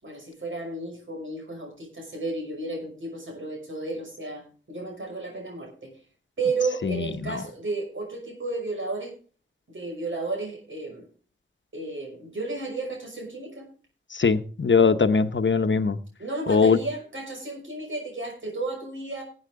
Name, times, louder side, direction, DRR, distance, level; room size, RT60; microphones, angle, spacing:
voice 1, 0.0-5.9 6.4-9.1 9.7-11.0 11.7-13.7 16.2-19.2, right 3 dB, 75° right, 0 dB, 5.8 m, -33 dB
voice 2, 6.8-7.4 14.1-16.0 16.5-16.8, left 5 dB, 70° left, 10 dB, 0.9 m, -21 dB
18.5 x 8.7 x 3.7 m, 0.39 s
wide cardioid pair, 65°, 20 cm